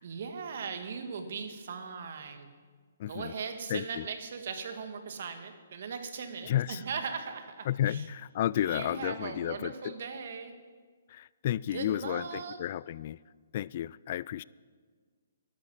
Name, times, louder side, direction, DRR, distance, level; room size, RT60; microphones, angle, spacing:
voice 1, 0.0-2.5 3.1-8.1 8.6-10.5 11.7-12.6, right 5 dB, 60° right, 1.9 m, -39 dB
voice 2, 3.0-3.3 3.7-4.1 6.5-6.8 7.7-9.9 11.1-13.2 13.5-14.4, left 12 dB, 45° left, 0.3 m, -32 dB
12.5 x 11.0 x 7.3 m
hypercardioid pair, 145°, 0 cm